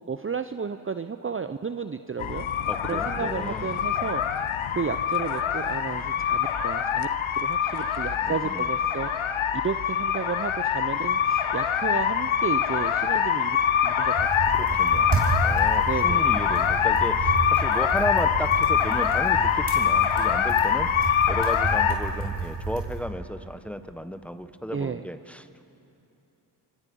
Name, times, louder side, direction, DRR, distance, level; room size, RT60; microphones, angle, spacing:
voice 1, 0.1-2.5 2.9-4.2 4.7-7.1 7.4-9.4 9.6-13.6 13.8-14.5 14.9-15.1 15.9-16.2 22.1-22.2 24.7-25.0, right 6 dB, 25° right, 10 dB, 0.7 m, -32 dB
sound 1, 2.2-21.9, left 8 dB, 80° left, 1.0 m, -24 dB
voice 2, 2.7-3.8 8.2-8.7 14.5-25.6, equal, 5° left, 9 dB, 1.3 m, -34 dB
sound 2, 14.1-23.0, right 3 dB, 60° right, 4.6 m, -31 dB
24.5 x 24.5 x 5.5 m, 2.9 s
cardioid pair, 50°, 47 cm